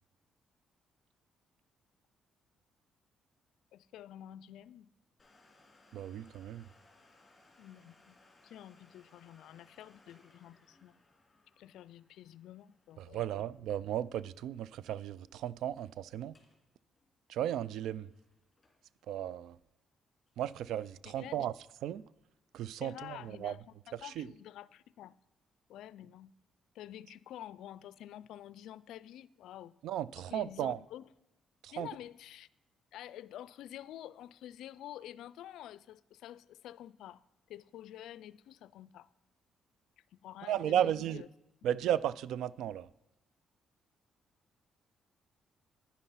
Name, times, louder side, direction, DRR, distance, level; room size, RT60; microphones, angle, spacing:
voice 1, 3.7-4.9 7.6-8.2 8.4-11.0 11.6-13.5 21.0-21.5 22.8-25.2 25.7-26.3 26.7-29.8 30.3-31.0 31.7-32.5 32.9-37.2 37.5-39.1 40.1-41.3 41.6-41.8, left 12 dB, 85° left, 0.4 m, -49 dB
Domestic sounds home sounds, 5.2-14.6 14.9-15.0 15.6-15.9 16.2-16.6 17.0-19.0 19.5-19.6 20.3-20.4, left 2 dB, 25° left, 3.3 m, -66 dB
voice 2, 5.9-6.7 13.0-16.3 17.3-18.1 19.1-19.6 20.4-21.5 21.8-22.0 22.5-23.5 24.0-24.3 29.8-30.8 31.6-31.9 40.5-41.2 41.6-42.9, right 11 dB, 80° right, 0.3 m, -35 dB
9.9 x 9.7 x 5.7 m
cardioid pair, 90°, 0 cm